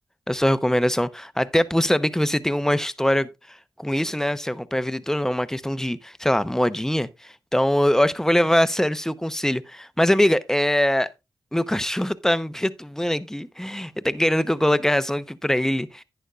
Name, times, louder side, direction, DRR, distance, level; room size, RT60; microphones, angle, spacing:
voice 1, 0.3-11.1 11.5-16.0, left 1 dB, 5° left, 0.8 m, -23 dB
11.0 x 9.2 x 2.4 m
cardioid pair, 45°, 9 cm